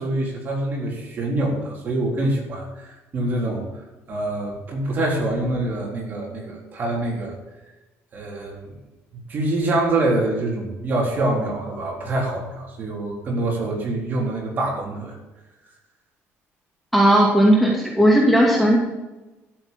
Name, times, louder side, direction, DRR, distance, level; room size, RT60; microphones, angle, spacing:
voice 1, 0.0-3.7 4.1-7.3 8.1-8.7 9.3-15.2, right 2 dB, 40° right, -2 dB, 4.1 m, -25 dB
voice 2, 16.9-18.8, right 1 dB, ahead, -3 dB, 2.4 m, -16 dB
13.0 x 7.1 x 7.2 m, 1.1 s
cardioid pair, 150°, 5 cm